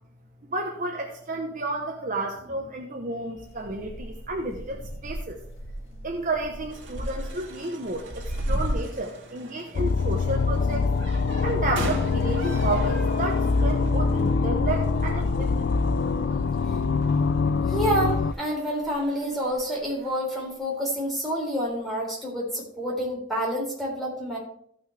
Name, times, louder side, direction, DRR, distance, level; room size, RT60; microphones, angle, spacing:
voice 1, 0.5-5.4 6.0-10.9 11.4-15.6, right 2 dB, 40° right, 2 dB, 0.9 m, -31 dB
sound 1, 3.4-9.2 9.5-16.6 16.8-17.6 18.2-20.1 20.5-20.9 21.6-21.7, equal, 80° left, 1.7 m, -37 dB
sound 2, 6.7-20.1, right 2 dB, 65° right, 2.0 m, -43 dB
sound 3, 9.8-18.3, left 4 dB, 55° left, 0.4 m, -24 dB
voice 2, 17.6-24.4, equal, ahead, -4 dB, 3.7 m, -28 dB
14.0 x 6.1 x 3.4 m, 0.66 s
head